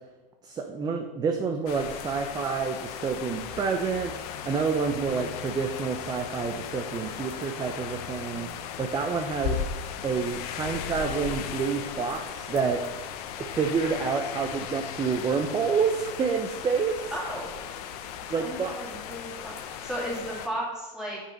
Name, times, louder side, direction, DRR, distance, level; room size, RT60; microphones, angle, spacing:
voice 1, 0.4-4.1 4.4-9.6 10.0-12.9 13.4-17.1 18.3-18.8, right 5 dB, 20° right, 4 dB, 0.5 m, -28 dB
sound 1, 1.7-20.5, left 8 dB, 65° left, 0.8 m, -37 dB
voice 2, 17.1-17.5 18.4-21.2, equal, 5° right, -6 dB, 2.5 m, -35 dB
5.9 x 5.5 x 5.1 m, 1.2 s
supercardioid pair, 125°, 21 cm